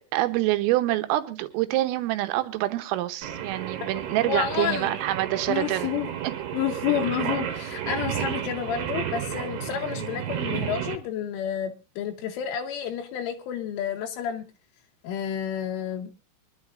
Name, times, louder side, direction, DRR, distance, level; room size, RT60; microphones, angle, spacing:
voice 1, 0.1-5.9, right 16 dB, 90° right, 10 dB, 3.6 m, -26 dB
Singing, 3.2-11.0, right 10 dB, 65° right, 3.4 m, -32 dB
voice 2, 4.2-4.9 5.5-6.1 6.5-14.4 15.0-16.1, left 9 dB, 80° left, 2 dB, 3.4 m, -30 dB
25.0 x 11.5 x 2.5 m, 0.29 s
omnidirectional pair, 5.8 m